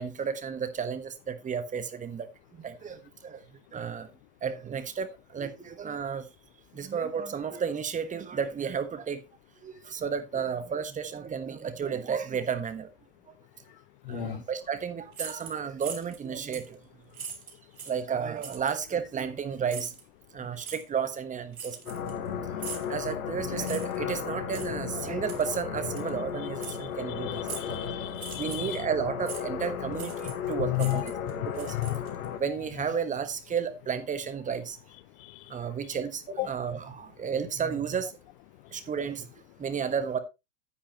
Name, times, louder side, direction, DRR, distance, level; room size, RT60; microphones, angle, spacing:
voice 1, 0.0-2.3 2.6-3.4 3.7-4.1 4.4-6.3 6.7-9.2 9.6-12.9 14.1-16.8 17.9-19.9 20.3-21.8 22.1-22.2 22.9-27.4 28.4-31.1 31.6-31.7 32.4-34.8 35.5-38.1 38.7-39.3 39.6-40.2, right 7 dB, 20° right, 1.2 m, -32 dB
voice 2, 14.1-14.4 26.7-26.9 27.2-28.9 30.6-31.2 31.7-32.0 32.2-32.4 35.2-35.6 36.4-36.5, left 20 dB, 45° left, 0.5 m, -33 dB
sound 1, 15.1-16.2 16.5-16.7 17.1-18.0 18.4-18.8 19.7-20.0 20.6-20.8 21.5-22.3 22.6-22.9 23.6-24.0 24.5-24.7 25.3-25.6 26.0-26.1 26.6-26.8 27.4-27.8 28.1-28.8 29.3-29.4 29.9-30.5 30.7-32.3, right 6 dB, 85° right, 2.4 m, -41 dB
sound 2, 21.9-32.4, left 8 dB, 75° left, 1.5 m, -35 dB
10.0 x 8.7 x 3.0 m
hypercardioid pair, 105°, 42 cm